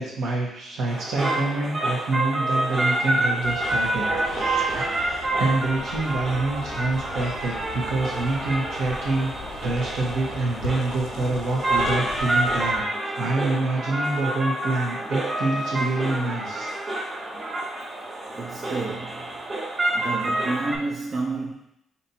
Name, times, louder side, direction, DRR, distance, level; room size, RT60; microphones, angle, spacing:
voice 1, 0.0-9.3 9.6-16.7, right 2 dB, 80° right, -3 dB, 1.2 m, -27 dB
sound 1, 0.9-20.8, right 1 dB, 30° right, 1.3 m, -28 dB
sound 2, 3.4-12.8, left 5 dB, 85° left, 0.3 m, -40 dB
voice 2, 18.4-19.4 19.9-21.5, right 3 dB, 50° right, -2 dB, 0.6 m, -30 dB
5.2 x 2.9 x 2.8 m, 0.79 s
cardioid pair, 90°, 0 cm